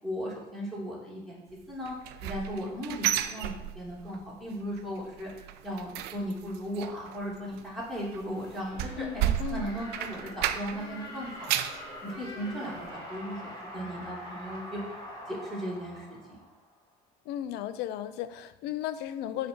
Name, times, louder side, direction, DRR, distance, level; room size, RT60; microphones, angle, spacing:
voice 1, 0.0-2.0 2.2-5.3 5.6-11.3 12.0-14.8 15.3-16.2, equal, ahead, -6 dB, 2.3 m, -37 dB
sound 1, 1.8-4.2 4.5-4.8 5.1-10.9 11.2-11.8 12.3-12.4 12.9-13.0, right 12 dB, 70° right, 0.5 m, -33 dB
sound 2, 8.0-16.8, left 1 dB, 25° left, 2.3 m, -44 dB
voice 2, 9.0-9.7 17.3-19.5, left 11 dB, 75° left, 13 dB, 0.4 m, -35 dB
6.8 x 3.5 x 5.2 m, 0.97 s
cardioid pair, 120°, 17 cm